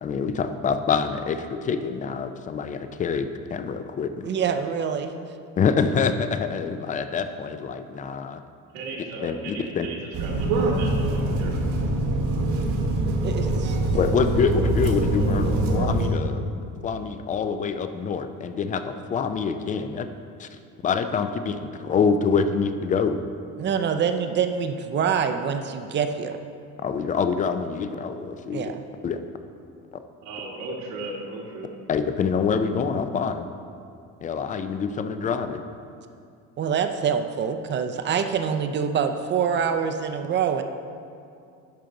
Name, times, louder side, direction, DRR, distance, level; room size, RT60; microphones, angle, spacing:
voice 1, 0.0-4.3 5.6-8.4 9.2-9.9 13.9-16.4 16.8-20.1 20.4-20.5 20.8-23.2 26.8-28.7 29.0-29.2 31.9-33.5 34.2-35.6, left 5 dB, 25° left, 9 dB, 0.3 m, -26 dB
voice 2, 4.2-5.3 13.2-13.8 23.6-26.4 28.5-28.8 36.6-40.6, right 7 dB, 35° right, 8 dB, 0.5 m, -25 dB
voice 3, 8.7-11.5 30.2-31.7, right 2 dB, 80° right, -3 dB, 1.7 m, -36 dB
sound 1, 10.1-16.1, right 2 dB, 60° right, 1.3 m, -24 dB
10.5 x 5.8 x 3.8 m, 2.4 s
cardioid pair, 135°, 34 cm